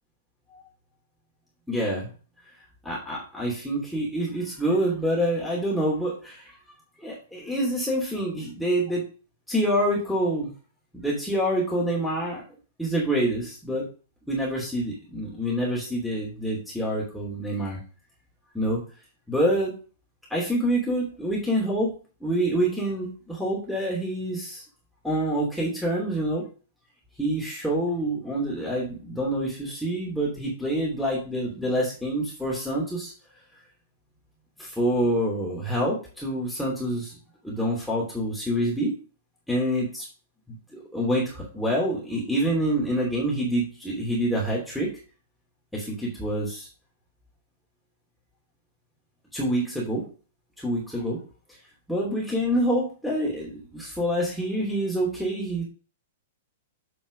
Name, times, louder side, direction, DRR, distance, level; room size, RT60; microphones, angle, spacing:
voice 1, 1.7-2.1 2.8-6.6 7.0-9.0 9.5-10.5 10.9-12.4 12.8-13.9 14.3-17.8 18.5-18.8 19.3-19.7 20.3-21.9 22.2-24.6 25.0-26.4 27.2-33.1 34.6-37.2 37.4-38.9 39.5-40.1 40.5-44.9 45.7-46.7 49.3-50.0 50.6-51.2 51.9-55.6, right 1 dB, ahead, -5 dB, 3.0 m, -26 dB
7.8 x 5.3 x 5.1 m, 0.37 s
figure-of-eight pair, 105°, 0 cm